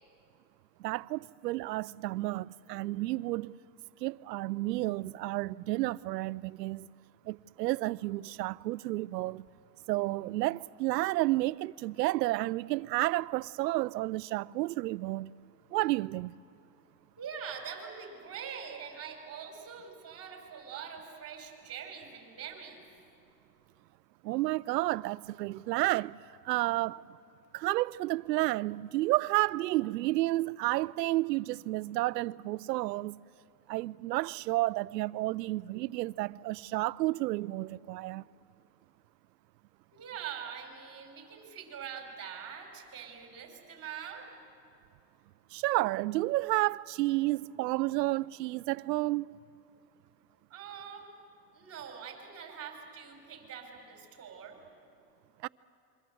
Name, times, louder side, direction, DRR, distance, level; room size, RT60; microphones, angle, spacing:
voice 1, 0.8-3.5 4.0-6.9 7.3-9.5 9.9-15.3 15.7-16.4 24.2-26.2 26.4-27.0 27.5-33.2 33.7-38.2 45.5-49.3 55.4-55.5, right 18 dB, 85° right, 0.6 m, -31 dB
voice 2, 17.2-22.8 39.9-44.3 50.5-51.1 51.5-54.6, right 7 dB, 30° right, 5.4 m, -44 dB
27.5 x 23.5 x 7.8 m
supercardioid pair, 115°, 48 cm